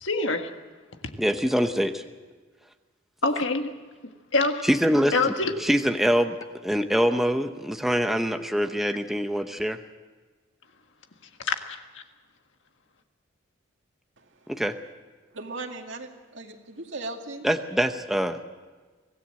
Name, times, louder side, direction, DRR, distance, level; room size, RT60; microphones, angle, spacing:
voice 1, 0.0-0.5 3.2-3.7 4.3-4.6 5.1-5.5 11.4-12.0, left 3 dB, 70° left, 6 dB, 1.7 m, -25 dB
voice 2, 1.2-2.0 4.6-5.1 5.6-6.4 6.6-9.8 14.5-14.8 17.4-18.4, equal, ahead, 6 dB, 0.8 m, -24 dB
voice 3, 15.3-17.5, right 2 dB, 65° right, 3 dB, 2.3 m, -37 dB
24.5 x 17.0 x 7.6 m, 1.4 s
head